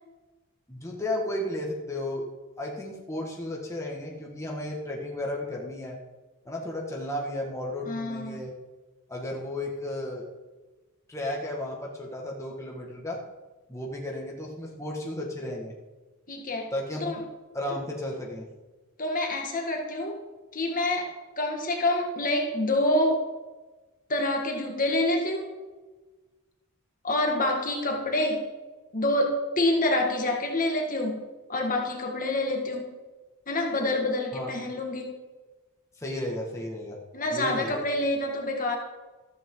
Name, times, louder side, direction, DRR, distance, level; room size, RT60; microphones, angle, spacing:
voice 1, 0.7-2.3 2.6-6.0 6.5-8.5 9.1-10.3 11.1-13.2 13.7-15.8 16.7-17.2 17.5-18.5 34.3-34.5 36.0-37.0 37.3-37.9, left 1 dB, 15° left, -2 dB, 1.9 m, -34 dB
voice 2, 7.9-8.4 16.3-16.7 17.0-17.2 19.0-20.2 20.5-21.1 21.4-23.2 24.1-25.5 27.0-28.5 28.9-31.2 31.5-32.9 33.5-35.1 37.1-38.8, left 1 dB, 40° left, 1 dB, 2.0 m, -27 dB
14.0 x 13.5 x 3.9 m, 1.2 s
head